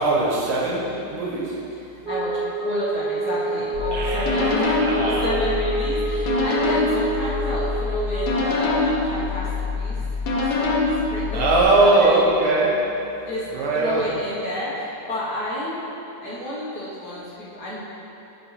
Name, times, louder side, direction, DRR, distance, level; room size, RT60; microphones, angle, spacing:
voice 1, 0.0-1.6 3.9-5.3 6.3-6.5 11.3-12.9 13.5-14.1, right 2 dB, 80° right, -4 dB, 2.0 m, -21 dB
voice 2, 1.8-10.0 10.3-10.8 11.1-12.2 13.3-13.5 13.7-15.9 16.2-17.8, left 1 dB, 50° left, -8 dB, 1.8 m, -30 dB
Wind instrument woodwind instrument, 2.0-8.5, right 2 dB, 60° right, 1.4 m, -28 dB
sound 1, 3.7-11.6, left 3 dB, 75° left, 1.6 m, -24 dB
8.6 x 6.1 x 3.3 m, 3.0 s
omnidirectional pair, 2.3 m